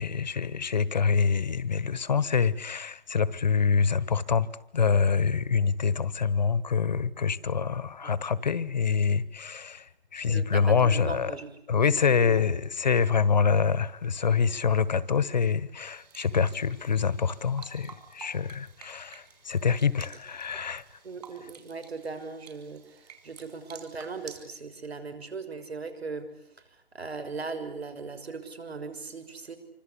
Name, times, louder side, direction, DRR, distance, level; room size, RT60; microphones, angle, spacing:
voice 1, 0.0-4.5 4.7-11.3 11.7-20.8, left 6 dB, 45° left, 1.3 m, -26 dB
voice 2, 10.3-11.8 12.1-12.4 21.0-26.3 26.6-29.6, right 4 dB, 85° right, 6.6 m, -39 dB
sound 1, 15.8-24.5, right 7 dB, 40° right, 5.6 m, -51 dB
27.0 x 25.5 x 8.5 m
hypercardioid pair, 175°, 31 cm